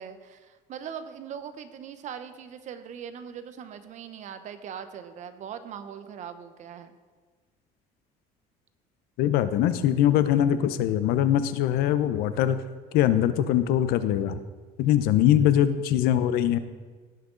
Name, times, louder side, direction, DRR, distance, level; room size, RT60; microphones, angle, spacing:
voice 1, 0.0-6.9 14.9-15.1, right 8 dB, 50° right, 10 dB, 0.9 m, -40 dB
voice 2, 9.2-12.6 12.9-14.4 14.8-16.6, left 11 dB, 70° left, 12 dB, 0.7 m, -22 dB
17.0 x 6.0 x 3.9 m, 1.4 s
cardioid pair, 115°, 16 cm